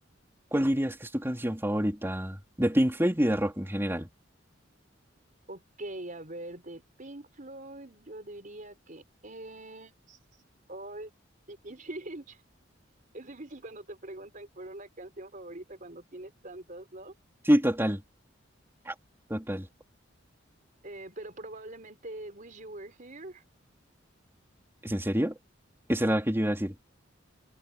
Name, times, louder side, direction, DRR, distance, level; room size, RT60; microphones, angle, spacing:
voice 1, 0.5-4.1 17.4-18.0 18.9-19.0 19.3-19.7 24.8-25.4 25.9-26.7, equal, 10° right, 4.2 m, -27 dB
voice 2, 5.5-10.2 10.7-11.1 11.5-12.4 13.1-17.1 20.8-23.4, right 1 dB, 40° right, 4.6 m, -43 dB
head